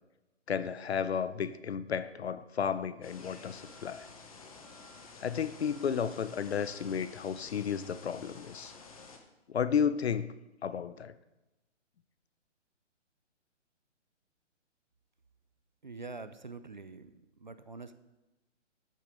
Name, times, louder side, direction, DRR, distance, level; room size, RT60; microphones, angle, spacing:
voice 1, 0.5-4.1 5.2-8.7 9.5-10.3 10.6-11.1, left 7 dB, 60° left, 15 dB, 0.6 m, -33 dB
sound 1, 3.0-9.2, left 4 dB, 30° left, 0.9 m, -51 dB
voice 2, 15.8-17.9, right 3 dB, 40° right, 12 dB, 0.4 m, -45 dB
9.6 x 8.7 x 4.8 m, 1.0 s
hypercardioid pair, 170°, 37 cm